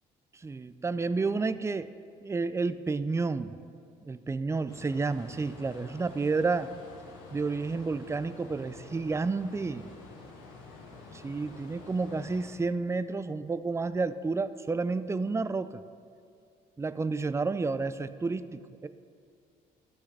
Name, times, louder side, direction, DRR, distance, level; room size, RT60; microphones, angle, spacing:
voice 1, 0.3-1.9 2.2-3.5 4.0-6.7 7.3-9.9 11.1-15.8 16.8-18.9, right 4 dB, 15° right, 13 dB, 0.3 m, -30 dB
sound 1, 4.7-12.5, left 3 dB, 85° left, 1.0 m, -49 dB
12.5 x 5.7 x 3.3 m, 2.3 s
hypercardioid pair, 55°, 21 cm